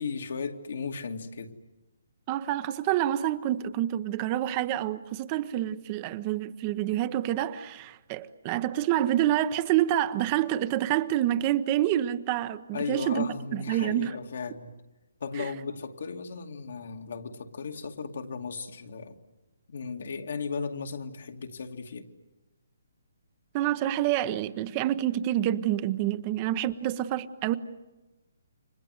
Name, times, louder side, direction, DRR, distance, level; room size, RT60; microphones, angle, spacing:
voice 1, 0.0-1.6 12.7-14.7 15.2-19.2 19.7-22.1, left 5 dB, 70° left, 2.4 m, -36 dB
voice 2, 2.3-14.1 15.4-15.5 23.5-27.6, right 12 dB, 25° right, 0.8 m, -27 dB
29.5 x 24.5 x 7.9 m
hypercardioid pair, 160°, 0 cm